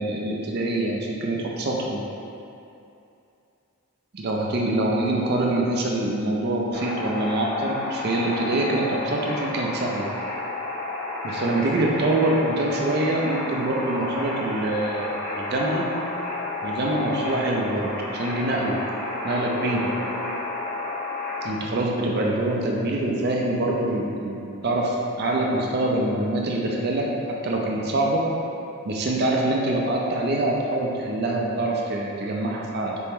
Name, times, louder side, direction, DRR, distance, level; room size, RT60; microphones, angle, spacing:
voice 1, 0.0-2.0 4.1-10.1 11.2-15.9 16.6-18.8 19.2-19.9 21.4-28.2 28.8-33.0, right 1 dB, 45° right, -2 dB, 0.5 m, -25 dB
sound 1, 6.7-21.5, left 2 dB, 45° left, 1.1 m, -31 dB
4.2 x 2.9 x 3.5 m, 2.7 s
head